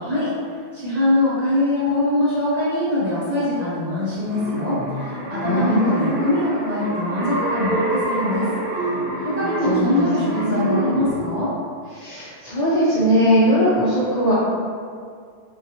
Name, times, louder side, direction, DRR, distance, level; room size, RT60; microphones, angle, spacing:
voice 1, 0.0-0.3 0.7-8.9 9.2-11.5, left 1 dB, 50° right, -8 dB, 0.6 m, -23 dB
sound 1, 4.1-11.2, right 2 dB, 85° right, 0.9 m, -27 dB
voice 2, 5.4-6.3 9.6-9.9 10.2-10.9 11.9-14.3, equal, 55° left, -9 dB, 0.4 m, -20 dB
2.7 x 2.2 x 2.7 m, 2.2 s
omnidirectional pair, 1.1 m